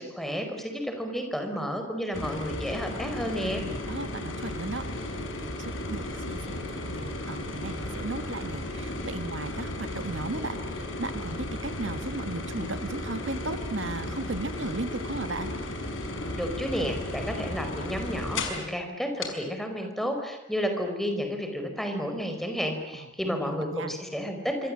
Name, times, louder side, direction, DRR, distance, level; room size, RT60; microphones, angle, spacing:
voice 1, 0.0-3.6 16.3-24.7, equal, ahead, 5 dB, 4.7 m, -31 dB
sound 1, 2.1-18.7 19.2-19.3, left 1 dB, 85° left, 5.6 m, -34 dB
voice 2, 3.5-15.5 22.9-23.9, right 2 dB, 75° right, 9 dB, 1.8 m, -36 dB
26.5 x 25.5 x 7.6 m, 0.90 s
head